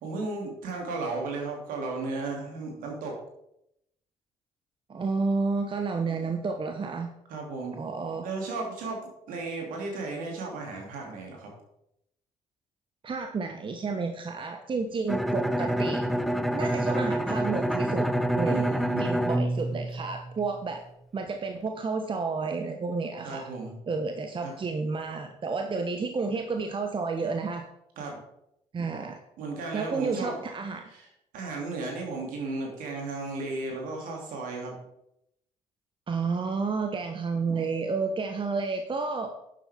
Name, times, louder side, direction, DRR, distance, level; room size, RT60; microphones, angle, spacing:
voice 1, 0.0-3.2 7.3-7.8 8.2-11.5 18.4-19.1 23.2-23.8 24.4-24.5 28.0-28.2 29.4-30.4 30.9-31.1 31.3-34.8, right 3 dB, 60° right, 0 dB, 2.8 m, -34 dB
voice 2, 4.9-7.1 7.8-8.3 13.0-16.0 16.5-18.1 18.3-18.7 19.0-20.8 21.1-23.5 23.9-27.7 28.7-29.2 29.7-30.8 36.1-39.5, right 4 dB, 35° right, 5 dB, 1.0 m, -31 dB
Bowed string instrument, 15.1-20.8, right 1 dB, ahead, 0.6 m, -27 dB
11.0 x 7.7 x 3.6 m, 0.80 s
figure-of-eight pair, 45°, 16 cm